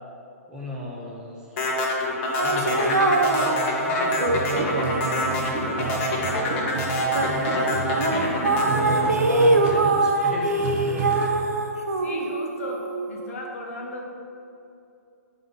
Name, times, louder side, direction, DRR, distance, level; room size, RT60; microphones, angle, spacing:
voice 1, 0.5-11.1, equal, 10° right, -4 dB, 1.1 m, -35 dB
sound 1, 1.6-9.9, left 1 dB, 40° left, 1.2 m, -26 dB
sound 2, 2.4-6.4 6.8-13.3, right 2 dB, 85° right, 0.6 m, -24 dB
sound 3, 4.2-11.3, right 5 dB, 45° right, 0.9 m, -31 dB
voice 2, 11.9-14.1, left 1 dB, 60° left, 0 dB, 1.0 m, -35 dB
6.3 x 3.8 x 5.2 m, 2.6 s
figure-of-eight pair, 125°, 9 cm